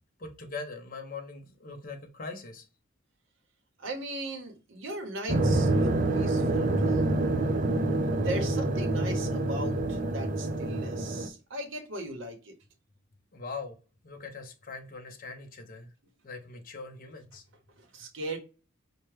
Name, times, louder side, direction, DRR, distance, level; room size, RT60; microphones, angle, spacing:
voice 1, 0.2-2.7 9.8-9.9 13.3-13.8 14.0-15.9 16.2-17.4, left 3 dB, 45° left, 0.7 m, -41 dB
voice 2, 3.8-7.2 8.2-12.5 17.8-18.4, right 1 dB, 65° right, 0.8 m, -38 dB
sound 1, 5.3-11.3, right 2 dB, 40° right, 0.4 m, -27 dB
4.6 x 2.1 x 3.2 m
head